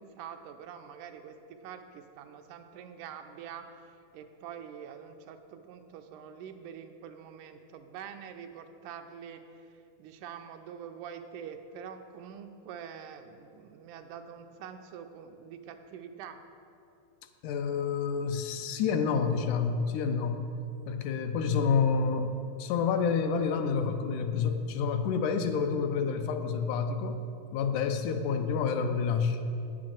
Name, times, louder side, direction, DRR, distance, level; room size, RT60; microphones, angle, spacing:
voice 1, 0.0-9.7 10.0-16.4, right 7 dB, 90° right, 7 dB, 2.2 m, -45 dB
voice 2, 17.4-20.4 20.9-27.2 27.5-29.4, left 5 dB, 80° left, 7 dB, 2.1 m, -28 dB
8.7 x 7.5 x 7.4 m, 2.7 s
omnidirectional pair, 3.6 m